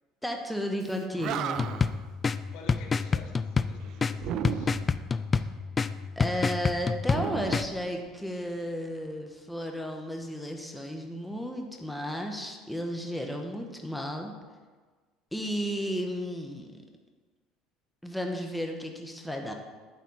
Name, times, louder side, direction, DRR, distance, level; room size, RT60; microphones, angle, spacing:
voice 1, 0.2-1.7 6.2-14.3 15.3-16.8 18.0-19.5, equal, 5° left, 2 dB, 1.1 m, -33 dB
Animal, 0.9-1.0 1.2-2.0 4.2-5.0 7.0-8.4, right 9 dB, 60° right, 0.4 m, -35 dB
sound 1, 1.6-7.7, left 5 dB, 25° left, 0.3 m, -29 dB
voice 2, 2.5-4.7, left 4 dB, 70° left, 2 dB, 1.4 m, -48 dB
9.4 x 4.1 x 7.2 m, 1.4 s
supercardioid pair, 105°, 0 cm